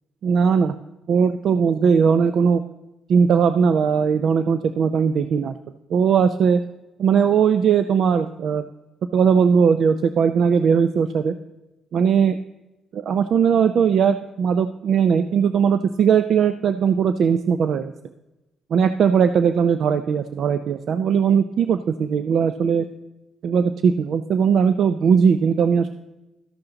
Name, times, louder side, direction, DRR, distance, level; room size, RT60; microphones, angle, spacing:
voice 1, 0.2-0.7 1.1-2.6 3.1-5.6 5.9-6.6 7.0-8.6 9.1-11.4 11.9-12.4 12.9-17.9 18.7-22.9 23.4-25.9, right 6 dB, 65° right, 11 dB, 0.5 m, -19 dB
13.0 x 11.5 x 4.0 m, 1.0 s
cardioid pair, 90°, 0 cm